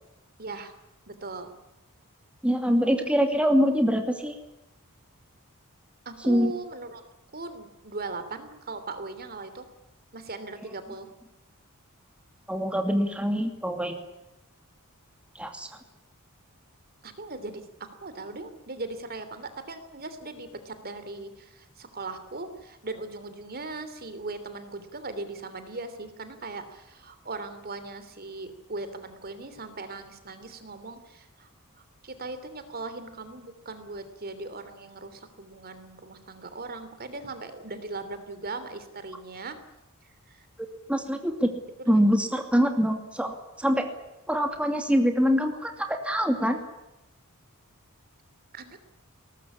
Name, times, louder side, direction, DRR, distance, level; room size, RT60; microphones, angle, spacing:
voice 1, 0.4-0.7 1.1-1.5 6.0-7.0 7.3-9.7 10.1-11.1 17.0-17.6 18.0-31.5 32.0-39.6 40.3-40.4 41.8-41.9 48.5-48.8, right 3 dB, 45° right, 11 dB, 3.2 m, -39 dB
voice 2, 2.4-4.4 6.3-6.5 12.5-14.0 15.4-15.7 40.9-41.5 41.9-43.8 44.3-46.6, equal, 5° right, 4 dB, 2.5 m, -24 dB
22.0 x 19.5 x 9.9 m, 0.94 s
head